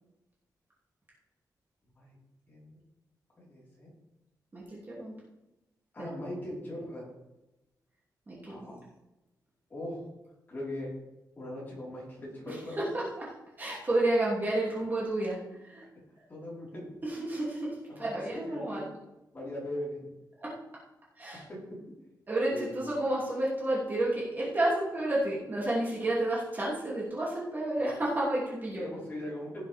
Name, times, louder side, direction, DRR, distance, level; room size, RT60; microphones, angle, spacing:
voice 1, 3.4-3.9 5.9-7.1 8.5-8.8 9.7-10.1 10.5-10.9 11.4-12.7 16.3-16.9 18.0-18.1 18.4-18.8 19.3-20.1 21.5-21.6 22.5-22.9 27.8-28.0 28.7-29.7, left 1 dB, 25° left, -6 dB, 4.7 m, -39 dB
voice 2, 4.5-5.1 6.0-6.1 8.3-8.7 12.5-13.3 13.6-15.8 17.0-18.9 20.4-20.5 21.2-21.4 22.3-29.0, right 1 dB, 25° right, -6 dB, 2.9 m, -31 dB
16.0 x 7.3 x 3.6 m, 0.97 s
wide cardioid pair, 175°, 7 cm